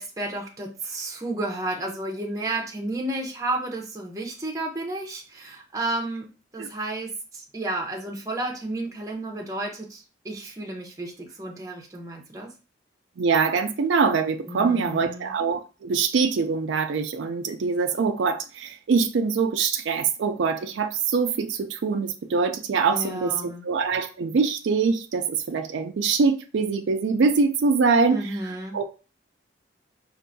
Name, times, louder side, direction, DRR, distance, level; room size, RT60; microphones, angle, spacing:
voice 1, 0.0-6.3 6.5-12.5 14.5-15.3 22.9-23.6 28.1-28.8, right 2 dB, 20° right, 0.7 m, -32 dB
voice 2, 13.2-23.4 23.6-28.2 28.7-28.8, right 5 dB, 75° right, 0.4 m, -23 dB
4.6 x 2.5 x 2.6 m
head